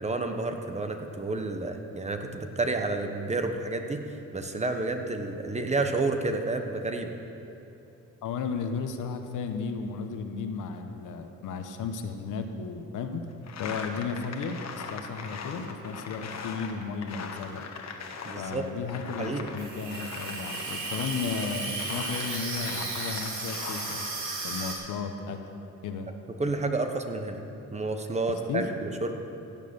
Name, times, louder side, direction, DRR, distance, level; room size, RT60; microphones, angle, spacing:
voice 1, 0.0-7.1 18.2-18.7 19.2-19.5 26.4-27.4 27.7-29.1, right 3 dB, 20° right, 5 dB, 1.1 m, -30 dB
voice 2, 8.2-13.2 13.6-17.7 18.4-24.1 24.4-25.4 25.8-26.1 28.5-28.6, left 5 dB, 70° left, 6 dB, 1.1 m, -34 dB
sound 1, 13.5-18.6 18.9-24.1, left 5 dB, 55° left, 1.4 m, -40 dB
Water tap faucet / Sink (filling or washing), 19.6-24.8, right 3 dB, 60° right, 2.8 m, -35 dB
16.0 x 7.5 x 6.8 m, 2.9 s
cardioid pair, 100°, 32 cm